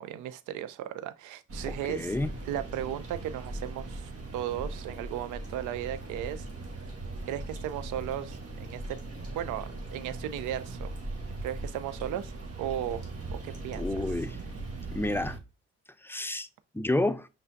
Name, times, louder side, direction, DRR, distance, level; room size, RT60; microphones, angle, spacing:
voice 1, 0.0-2.2 2.4-6.5 7.3-9.0 9.3-10.9 11.4-12.3 12.6-13.0 13.3-14.2, right 11 dB, 80° right, 0.5 m, -36 dB
sound 1, 1.5-15.4, right 2 dB, 50° right, 1.4 m, -39 dB
voice 2, 1.8-2.3 13.8-14.4 14.9-15.4 16.0-16.5 16.7-17.3, left 2 dB, 5° left, 0.4 m, -29 dB
5.5 x 3.4 x 2.5 m
hypercardioid pair, 45°, 30 cm